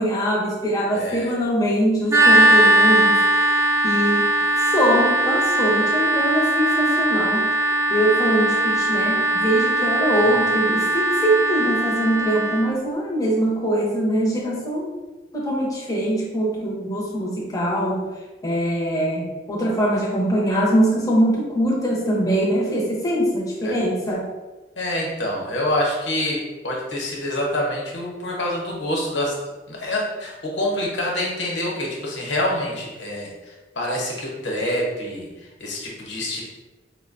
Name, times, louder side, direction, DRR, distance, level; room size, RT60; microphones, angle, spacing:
voice 1, 0.0-4.3 4.6-7.5 7.9-14.9 15.3-18.1 18.4-24.3, right 1 dB, 20° left, -4 dB, 0.7 m, -22 dB
voice 2, 0.9-1.3 10.1-10.4 23.6-23.8 24.8-29.4 29.7-36.4, left 1 dB, 85° left, -2 dB, 0.9 m, -26 dB
sound 1, 2.1-12.7, right 1 dB, 15° right, 0.4 m, -19 dB
4.8 x 2.1 x 2.5 m, 1.2 s
head